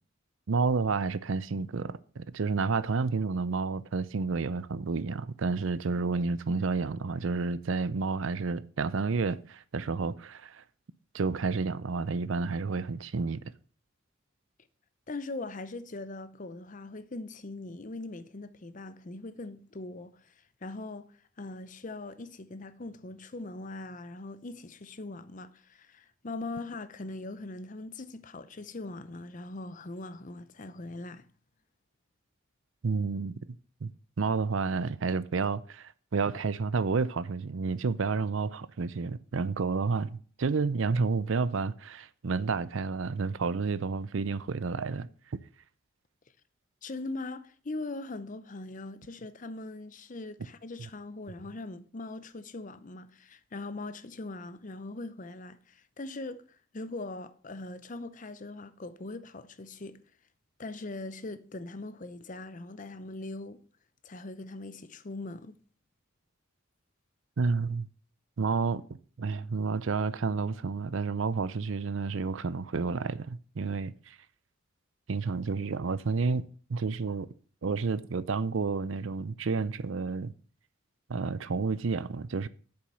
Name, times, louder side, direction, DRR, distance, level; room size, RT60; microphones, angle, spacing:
voice 1, 0.5-10.6 11.1-13.4 32.8-33.9 34.2-45.4 50.8-50.9 67.4-67.9 68.4-68.8 69.2-74.2 75.1-77.3 77.6-80.3 81.1-82.5, right 4 dB, 70° right, 0.5 m, -30 dB
voice 2, 15.1-31.2 46.8-56.4 56.7-60.0 60.6-63.6 64.0-65.6, left 2 dB, 40° left, 0.7 m, -41 dB
7.9 x 7.0 x 5.6 m
head